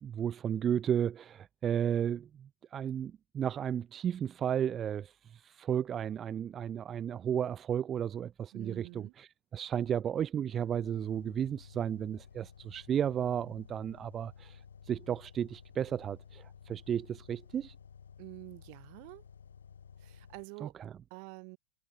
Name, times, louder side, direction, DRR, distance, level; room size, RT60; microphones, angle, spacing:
voice 1, 0.0-17.7 20.6-20.9, right 9 dB, 25° right, 2.2 m, -33 dB
voice 2, 8.5-9.1 18.2-19.3 20.0-20.7 21.1-21.6, right 40 dB or more, 45° right, 6.3 m, -47 dB
sound 1, 10.7-20.4, left 7 dB, 70° left, 5.3 m, -54 dB
figure-of-eight pair, 90°, 0 cm